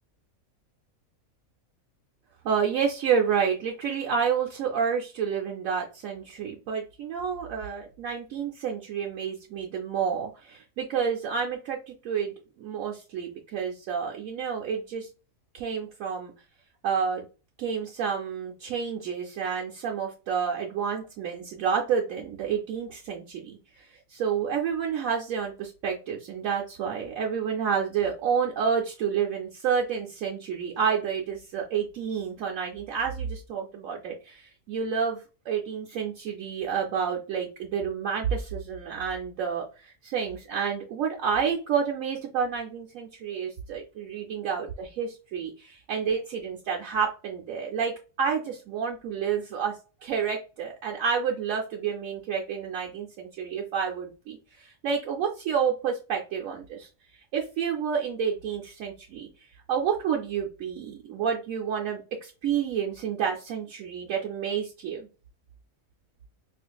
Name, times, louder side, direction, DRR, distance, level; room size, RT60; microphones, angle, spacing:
voice 1, 2.4-15.1 15.5-16.3 16.8-17.3 17.6-35.2 35.5-56.9 57.3-59.3 59.7-65.1, right 7 dB, 70° right, -1 dB, 0.9 m, -29 dB
4.3 x 2.5 x 2.2 m, 0.33 s
omnidirectional pair, 1.4 m